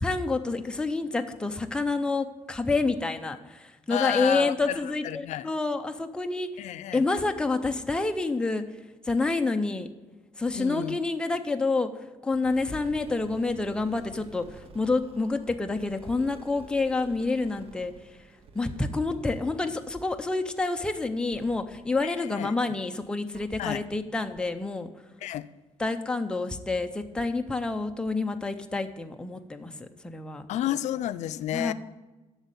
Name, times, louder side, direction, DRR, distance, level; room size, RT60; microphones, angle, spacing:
voice 1, 0.0-6.5 6.9-8.6 9.0-9.9 10.4-11.9 12.2-17.9 18.5-24.9 25.8-30.5 31.5-31.7, left 3 dB, 5° left, 0.5 m, -28 dB
voice 2, 3.9-5.5 6.6-7.0 10.5-11.0 22.0-22.5 23.6-23.8 25.2-25.5 30.5-31.7, left 12 dB, 90° left, 0.4 m, -31 dB
sound 1, 12.4-22.7 23.3-23.4 23.9-24.0 24.3-24.4, right 4 dB, 55° right, 0.8 m, -51 dB
8.0 x 6.3 x 8.0 m
cardioid pair, 170°, 12 cm